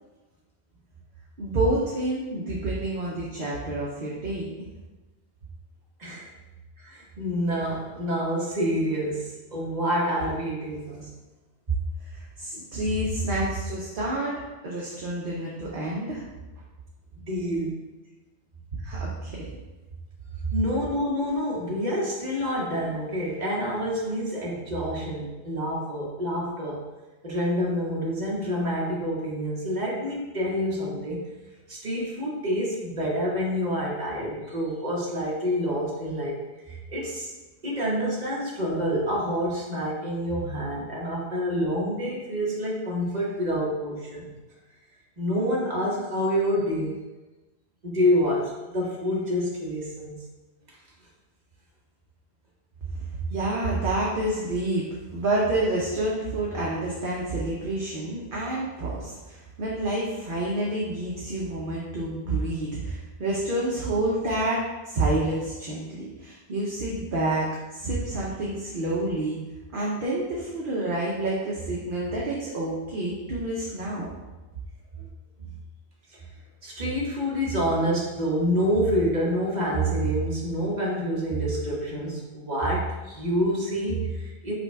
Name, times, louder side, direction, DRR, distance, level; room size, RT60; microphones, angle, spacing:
voice 1, 1.4-4.7 6.8-6.9 12.0-16.4 18.8-19.5 53.3-69.4 69.7-74.1, right 2 dB, 60° right, -5 dB, 0.9 m, -28 dB
voice 2, 6.9-11.1 12.5-12.6 17.2-17.8 20.5-26.8 27.2-31.2 31.7-36.4 36.6-37.3 37.6-44.3 45.2-47.0 47.8-50.2 50.7-50.8 75.0-75.1 76.1-76.2 76.6-84.5, equal, 45° right, -4 dB, 1.2 m, -27 dB
5.3 x 2.3 x 4.4 m, 1.1 s
omnidirectional pair, 1.1 m